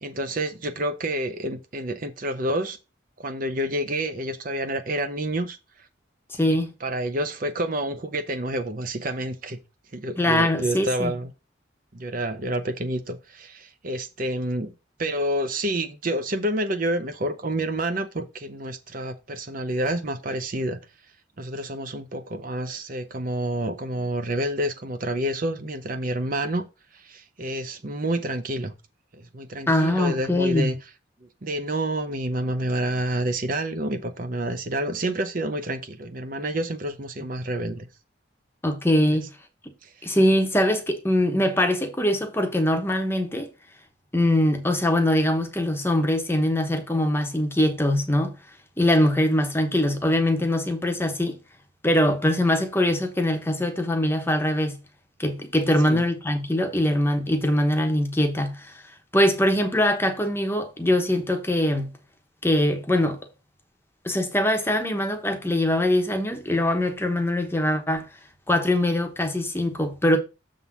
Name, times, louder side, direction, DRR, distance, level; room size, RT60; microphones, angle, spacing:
voice 1, 0.0-2.8 3.2-5.6 6.8-9.6 9.9-11.3 11.9-14.7 15.0-20.8 21.4-26.6 26.9-28.7 29.2-30.8 31.4-37.9 39.8-40.1 55.8-56.0, right 1 dB, 45° right, 0.7 m, -28 dB
voice 2, 6.3-6.7 10.2-11.1 29.7-30.7 38.6-39.3 40.0-43.5 44.1-48.3 48.8-51.4 51.8-54.8 55.2-58.8 59.1-61.9 62.4-63.2 64.0-68.1 68.5-70.2, left 1 dB, 10° left, 1.0 m, -22 dB
6.9 x 3.8 x 5.9 m
head